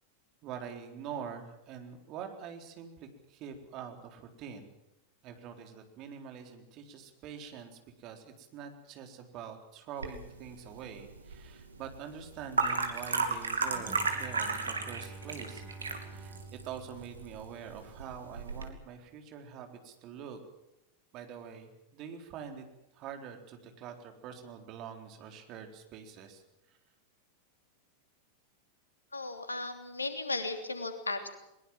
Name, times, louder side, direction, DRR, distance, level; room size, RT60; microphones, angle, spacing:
voice 1, 0.4-4.7 5.2-15.6 16.1-16.3 16.6-20.4 21.1-22.6 22.9-26.4 26.7-26.8, right 7 dB, 40° right, 5 dB, 4.1 m, -45 dB
sound 1, 10.0-18.7, right 4 dB, 75° right, 2.9 m, -35 dB
Bowed string instrument, 13.7-17.9, right 3 dB, 15° right, 2.5 m, -49 dB
voice 2, 29.1-31.3, left 3 dB, 80° left, 7 dB, 3.1 m, -35 dB
22.0 x 21.5 x 7.5 m, 0.87 s
figure-of-eight pair, 90°, 0 cm